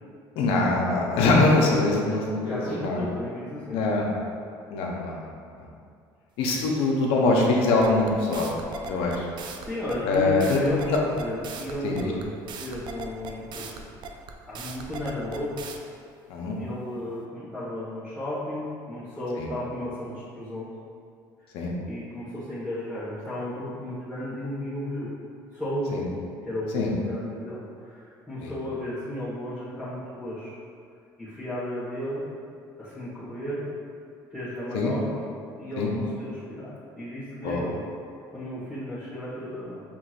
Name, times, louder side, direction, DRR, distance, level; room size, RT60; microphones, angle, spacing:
voice 1, 0.4-3.0 3.7-4.1 4.7-5.3 5.6-5.7 6.4-8.5 8.8-9.3 10.0-10.6 10.9-11.0 11.8-12.1 16.3-16.6 19.4-19.5 21.5-21.7 25.9-26.0 26.7-26.9 28.4-28.5 34.7-34.9 35.8-35.9 37.4-37.6, left 3 dB, 80° left, -1 dB, 0.8 m, -23 dB
voice 2, 2.4-3.8 9.6-13.9 14.5-15.6 16.6-20.7 21.8-25.1 25.5-26.0 26.4-30.6 31.2-32.3 32.8-33.7 34.3-35.1 35.6-37.8 38.3-39.8, left 1 dB, ahead, -13 dB, 1.4 m, -34 dB
sound 1, 7.8-15.8, right 5 dB, 55° right, 0.4 m, -39 dB
5.9 x 3.0 x 2.5 m, 2.4 s
supercardioid pair, 95°, 9 cm